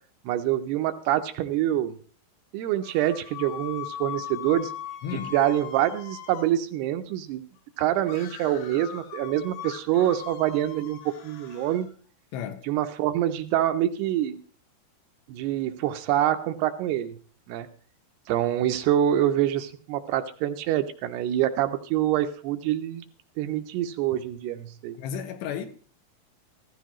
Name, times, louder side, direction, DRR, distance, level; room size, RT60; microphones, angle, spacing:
voice 1, 0.3-2.0 2.5-4.7 5.3-7.4 7.8-11.9 12.7-14.4 15.3-17.1 17.5-17.7 18.3-23.0 23.4-25.0, right 12 dB, 80° right, 2.5 m, -26 dB
sound 1, 2.8-6.6 8.0-11.9, left 10 dB, 65° left, 3.5 m, -40 dB
voice 2, 5.0-5.3 12.3-12.6 25.0-25.7, left 8 dB, 85° left, 3.3 m, -33 dB
15.5 x 14.5 x 3.0 m
omnidirectional pair, 5.0 m